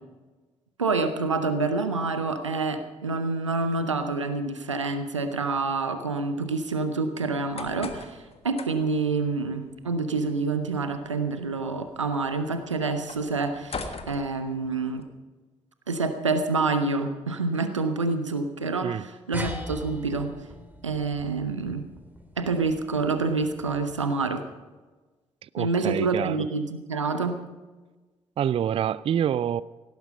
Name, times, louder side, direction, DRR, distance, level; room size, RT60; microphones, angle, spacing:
voice 1, 0.8-15.0 15.9-20.3 20.8-21.8 22.4-24.4 25.6-27.4, right 3 dB, 90° right, 0.8 m, -27 dB
sound 1, 7.3-15.0, left 4 dB, 40° left, 1.5 m, -43 dB
sound 2, 19.3-24.2, equal, 10° right, 2.7 m, -41 dB
voice 2, 25.4-26.4 28.4-29.6, right 9 dB, 40° right, 0.4 m, -27 dB
17.5 x 10.5 x 5.5 m
figure-of-eight pair, 40°, 15 cm